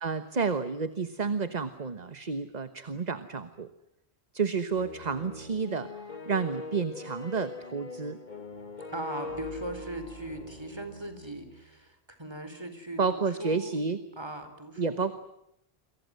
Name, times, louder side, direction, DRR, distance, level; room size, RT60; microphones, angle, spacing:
voice 1, 0.0-3.7 4.3-5.9 6.3-8.2 13.0-14.0 14.8-15.1, right 5 dB, 40° right, 11 dB, 1.3 m, -30 dB
sound 1, 4.7-11.7, left 2 dB, 45° left, 2.0 m, -42 dB
voice 2, 8.9-13.8 14.2-15.1, right 1 dB, 25° right, 8 dB, 4.4 m, -39 dB
29.5 x 23.5 x 7.8 m, 0.79 s
omnidirectional pair, 1.1 m